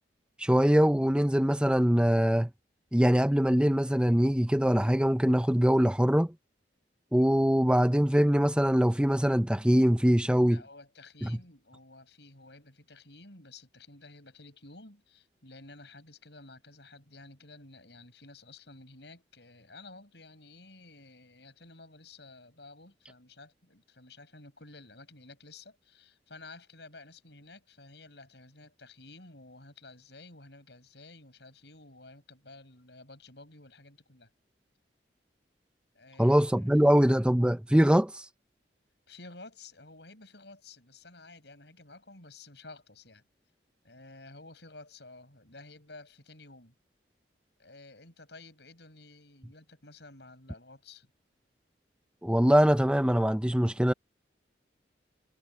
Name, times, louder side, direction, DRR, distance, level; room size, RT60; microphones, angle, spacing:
voice 1, 0.4-2.5 2.9-6.3 7.1-10.6 11.2-11.4 36.2-38.2 52.2-53.9, equal, 5° right, 0.6 m, -23 dB
voice 2, 10.5-34.3 35.9-37.0 39.1-43.2 43.8-46.7 47.6-51.1, left 2 dB, 65° left, 7.2 m, -52 dB
head